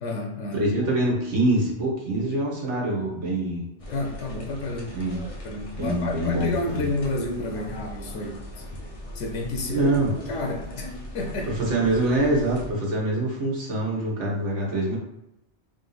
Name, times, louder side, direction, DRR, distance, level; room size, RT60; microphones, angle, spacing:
voice 1, 0.0-0.9 3.9-5.0 5.4-8.7 9.1-11.6, left 2 dB, 90° left, 2 dB, 1.0 m, -31 dB
voice 2, 0.5-3.6 4.9-5.2 5.8-6.8 9.7-10.1 11.5-15.0, right 1 dB, 75° right, -3 dB, 1.5 m, -25 dB
sound 1, 3.8-12.7, left 1 dB, 35° left, 0.7 m, -39 dB
3.7 x 2.7 x 4.0 m, 0.84 s
omnidirectional pair, 1.2 m